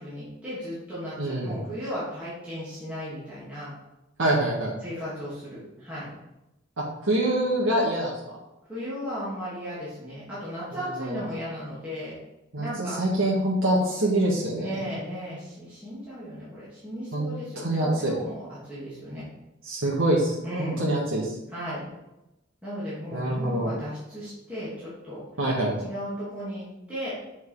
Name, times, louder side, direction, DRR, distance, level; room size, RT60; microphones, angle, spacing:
voice 1, 0.0-3.7 4.8-6.1 8.7-12.2 12.6-13.0 14.6-19.2 20.4-20.8 21.5-21.8 22.6-25.3 25.8-27.1, equal, 5° right, -11 dB, 2.8 m, -35 dB
voice 2, 1.2-1.6 4.2-4.8 6.8-8.1 11.0-11.2 12.5-14.8 17.1-17.3 17.6-18.1 19.6-21.4 23.1-23.7 25.4-25.7, right 1 dB, 85° right, -5 dB, 1.8 m, -25 dB
7.6 x 5.3 x 4.9 m, 0.93 s
head